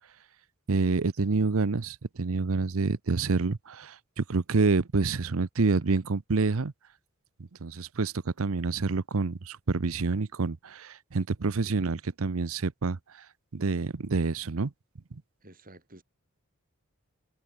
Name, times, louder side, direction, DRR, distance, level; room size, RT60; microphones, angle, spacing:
voice 1, 0.7-6.7 7.6-13.2 13.5-14.7 15.1-15.2, right 4 dB, 65° right, 0.7 m, -28 dB
voice 2, 11.6-12.0 15.4-16.0, right 1 dB, 40° right, 7.1 m, -52 dB
head